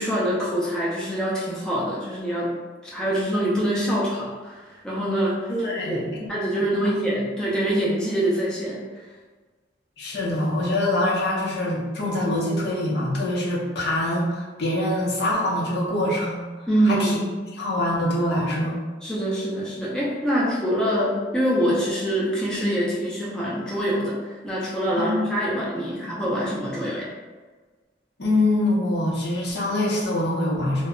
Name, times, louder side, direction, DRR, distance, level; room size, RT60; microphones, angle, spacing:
voice 1, 0.0-2.5 2.8-6.0 6.3-8.8 16.7-17.3 19.0-24.2 24.4-27.1, equal, 5° left, -7 dB, 0.4 m, -25 dB
voice 2, 5.5-6.3 6.6-6.7 10.0-17.2 17.5-18.8 24.9-25.3 28.2-30.9, left 1 dB, 60° left, -5 dB, 0.7 m, -24 dB
2.1 x 2.1 x 3.6 m, 1.3 s
head